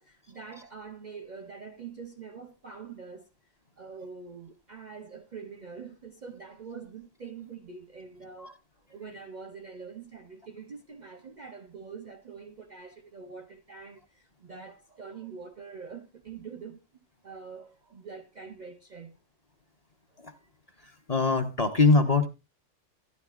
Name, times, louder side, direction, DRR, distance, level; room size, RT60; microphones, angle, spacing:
voice 1, 0.0-3.3 3.8-8.6 8.9-16.8 17.2-19.1, right 5 dB, 50° right, 0.6 m, -44 dB
voice 2, 20.8-22.3, left 3 dB, 35° left, 0.8 m, -23 dB
13.5 x 10.5 x 2.4 m
omnidirectional pair, 1.3 m